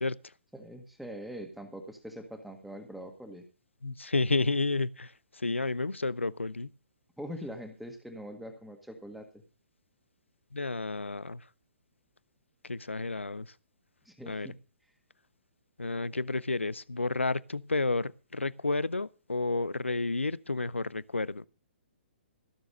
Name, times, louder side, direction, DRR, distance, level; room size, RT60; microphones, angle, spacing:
voice 1, 0.5-3.4 7.2-9.4 14.0-14.6, equal, ahead, 1.7 m, -43 dB
voice 2, 3.8-6.7 10.5-11.4 12.6-13.5 14.3-14.5 15.8-21.4, left 3 dB, 80° left, 0.5 m, -31 dB
15.5 x 7.0 x 6.5 m
figure-of-eight pair, 125°, 7 cm